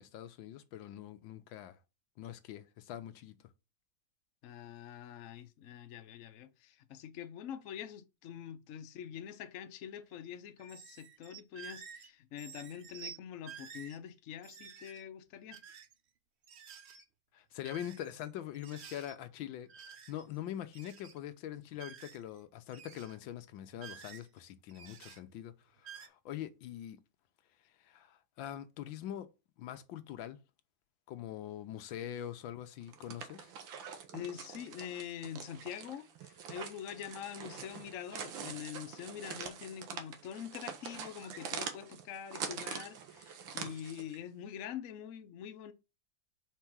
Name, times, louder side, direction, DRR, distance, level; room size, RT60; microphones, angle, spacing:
voice 1, 0.0-1.8 2.2-3.3 17.3-19.7 20.1-25.5 25.8-27.0 27.8-29.3 29.6-30.4 31.1-33.5, left 11 dB, 90° left, 1.5 m, -43 dB
voice 2, 4.4-15.6 34.1-45.7, left 9 dB, 60° left, 0.8 m, -45 dB
sound 1, 10.6-12.1 12.4-13.2 13.4-14.0 14.4-15.0 15.5-15.9 16.4-17.0 17.6-18.3 18.5-19.2 19.7-20.4 20.6-21.2 21.7-22.4 22.7-23.2 23.8-24.4 24.7-25.2 25.8-26.1, right 8 dB, 65° right, 0.6 m, -51 dB
sound 2, 32.8-44.2, right 7 dB, 90° right, 1.7 m, -44 dB
4.6 x 4.5 x 6.0 m
omnidirectional pair, 2.1 m